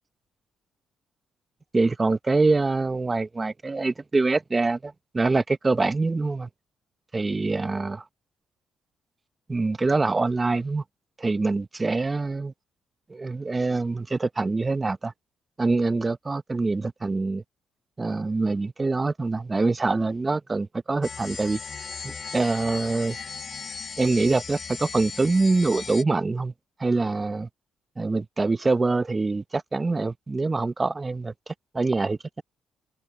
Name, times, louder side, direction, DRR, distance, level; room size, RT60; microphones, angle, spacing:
voice 1, 1.7-6.5 7.1-8.0 9.5-10.8 11.2-12.5 13.1-15.1 15.6-17.4 18.0-21.6 22.0-23.2 24.0-26.5 26.8-27.5 28.0-32.4, right 3 dB, 25° right, 0.7 m, -25 dB
sound 1, 21.0-26.0, left 5 dB, 40° left, 0.7 m, -37 dB
cardioid pair, 90°, 0 cm